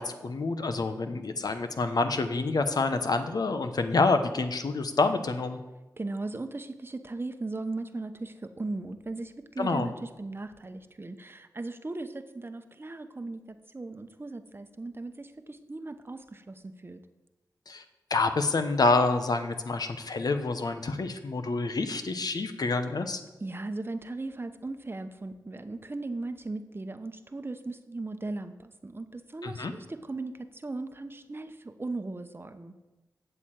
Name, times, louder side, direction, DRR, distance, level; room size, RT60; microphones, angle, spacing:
voice 1, 0.0-5.6 9.6-9.9 17.7-17.8 18.1-23.2 29.4-29.7, left 3 dB, 65° left, 8 dB, 0.9 m, -27 dB
voice 2, 6.0-17.0 23.4-32.7, right 2 dB, 30° right, 9 dB, 0.9 m, -37 dB
8.3 x 6.9 x 7.6 m, 1.1 s
cardioid pair, 45°, 7 cm